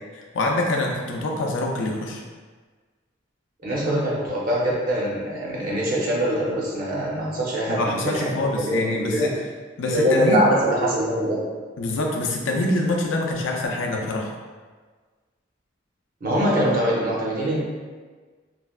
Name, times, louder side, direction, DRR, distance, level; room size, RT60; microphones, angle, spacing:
voice 1, 0.1-2.2 7.7-9.3 9.8-10.4 11.8-14.3, left 2 dB, 85° left, 0 dB, 0.4 m, -25 dB
voice 2, 3.6-9.3 9.9-11.4 16.2-17.6, equal, 50° right, -4 dB, 0.7 m, -23 dB
3.2 x 2.1 x 2.3 m, 1.4 s
head